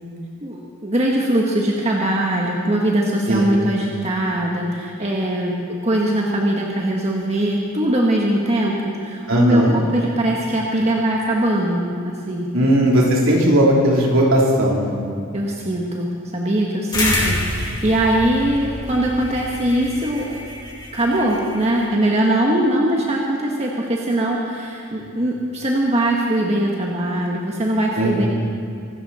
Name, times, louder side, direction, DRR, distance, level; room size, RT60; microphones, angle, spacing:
voice 1, 0.4-5.5 5.8-12.8 15.3-20.4 20.9-28.3, right 1 dB, 30° right, -2 dB, 1.5 m, -21 dB
voice 2, 9.3-9.8 12.5-14.9 28.0-28.3, right 1 dB, 65° right, -3 dB, 3.7 m, -17 dB
sound 1, 16.9-21.8, left 1 dB, 20° left, 2.8 m, -27 dB
25.0 x 13.0 x 4.3 m, 2.5 s
head